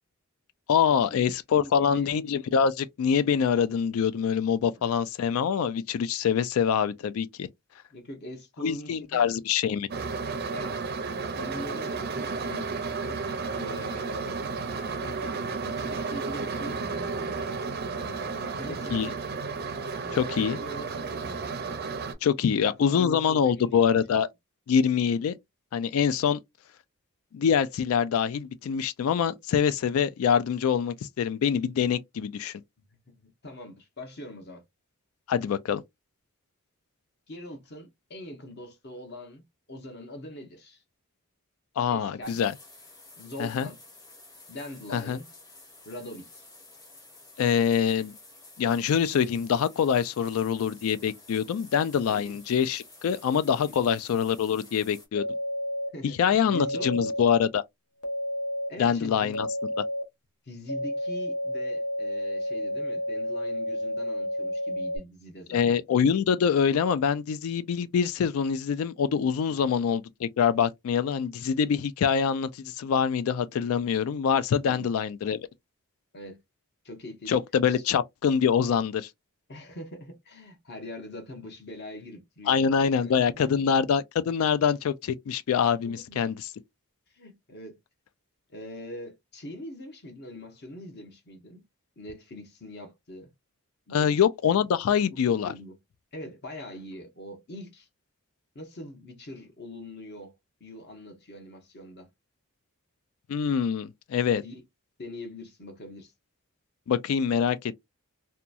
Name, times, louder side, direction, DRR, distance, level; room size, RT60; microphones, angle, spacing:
voice 1, 0.7-7.5 8.6-9.9 18.9-19.1 20.1-20.6 22.2-24.3 24.7-25.3 25.7-26.4 27.3-32.5 35.3-35.8 41.8-42.5 43.4-43.7 44.9-45.2 47.4-48.1 48.6-55.3 56.2-57.6 58.8-59.5 65.5-75.4 77.3-79.1 82.5-86.4 93.9-95.5 103.3-104.4 106.9-107.8, left 7 dB, 70° left, 0.3 m, -25 dB
voice 2, 1.5-2.1 4.8-4.9 7.9-9.3 10.5-10.8 11.3-12.7 13.0-14.4 14.9-17.5 18.0-19.2 19.9-21.4 22.4-23.8 33.1-34.6 37.3-39.4 39.7-40.8 41.9-42.4 43.2-43.8 44.5-45.3 45.8-46.5 52.1-52.4 53.7-53.9 55.9-57.1 58.7-59.4 60.5-65.6 69.5-69.7 76.1-76.4 76.8-77.4 77.7-77.8 79.5-83.6 85.8-86.2 87.1-87.8 88.5-91.6 92.0-93.3 93.9-94.2 95.1-95.8 96.1-97.9 98.5-100.3 100.6-102.1 104.4-104.6 105.0-106.1, left 1 dB, 45° left, 0.9 m, -43 dB
sound 1, 9.9-22.1, right 4 dB, 45° right, 0.5 m, -33 dB
sound 2, 42.2-55.1, left 2 dB, 15° left, 0.8 m, -51 dB
sound 3, 55.1-55.9 56.5-57.3 58.0-58.7 59.3-60.0 60.7-65.0, left 1 dB, 90° left, 0.8 m, -31 dB
2.8 x 2.3 x 2.4 m
head